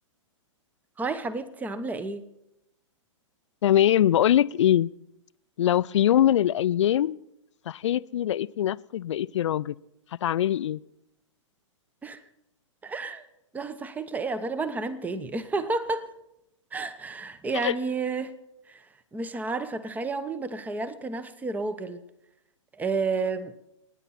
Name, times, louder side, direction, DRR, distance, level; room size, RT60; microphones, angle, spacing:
voice 1, 1.0-2.2 12.0-12.2 12.8-13.3 13.5-16.1 16.7-18.4 18.7-18.9 19.1-22.0 22.7-23.5, right 3 dB, 10° right, 15 dB, 0.9 m, -31 dB
voice 2, 3.6-4.9 5.6-7.2 7.7-9.8 10.2-10.8 17.6-17.7, left 11 dB, 65° left, 19 dB, 0.4 m, -22 dB
27.5 x 9.9 x 4.2 m, 0.84 s
hypercardioid pair, 115°, 16 cm